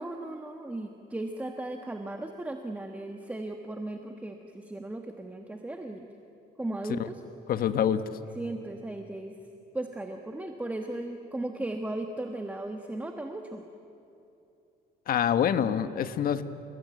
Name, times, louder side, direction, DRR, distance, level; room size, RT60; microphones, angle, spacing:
voice 1, 0.0-6.1 6.6-7.2 8.3-9.3 9.7-13.6, right 2 dB, 10° right, 4 dB, 1.4 m, -36 dB
voice 2, 7.5-8.0 15.1-16.4, left 9 dB, 60° left, 11 dB, 1.3 m, -25 dB
29.0 x 19.5 x 9.4 m, 2.8 s
cardioid pair, 110°, 17 cm